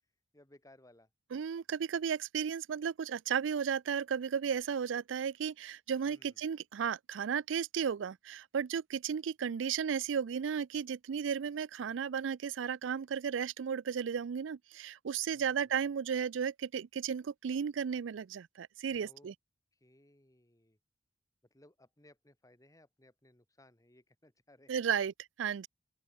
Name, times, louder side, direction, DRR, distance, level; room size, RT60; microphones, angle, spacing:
voice 1, 0.3-1.1 6.0-6.4 15.3-15.9 18.9-19.3 19.7-20.8 21.5-24.9, left 1 dB, 20° left, 2.7 m, -63 dB
voice 2, 1.3-19.3 24.7-25.1 25.4-25.7, right 7 dB, 80° right, 0.4 m, -34 dB
open air
head